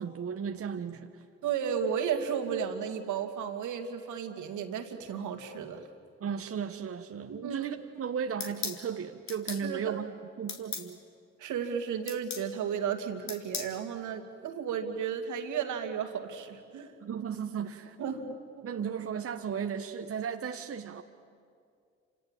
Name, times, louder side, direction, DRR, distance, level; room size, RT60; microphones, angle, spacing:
voice 1, 0.0-1.2 6.2-10.1 10.4-11.0 17.0-18.0 18.6-21.0, right 7 dB, 45° right, 6 dB, 1.3 m, -35 dB
voice 2, 1.4-5.9 7.3-7.6 9.6-10.0 11.4-16.9 18.0-18.7, right 7 dB, 65° right, 6 dB, 2.4 m, -34 dB
sound 1, 8.4-8.8 9.3-9.6 10.5-10.9 12.1-12.5 13.3-13.7, left 6 dB, 60° left, 2.8 m, -37 dB
29.0 x 26.5 x 7.5 m, 2.3 s
hypercardioid pair, 50°, 32 cm